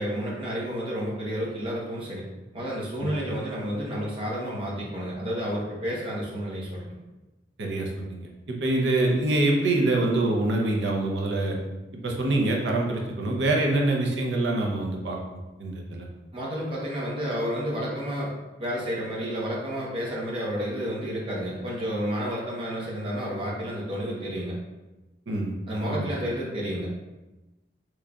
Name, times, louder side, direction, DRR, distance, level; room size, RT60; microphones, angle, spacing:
voice 1, 0.0-2.2 2.5-6.9 16.3-18.3 18.6-24.6 25.7-26.9, equal, 30° right, -5 dB, 0.8 m, -30 dB
voice 2, 7.6-11.6 12.0-15.2 15.6-16.1 25.3-25.5 25.9-26.1, right 2 dB, 75° right, 0 dB, 0.6 m, -25 dB
3.7 x 3.1 x 2.3 m, 1.1 s
head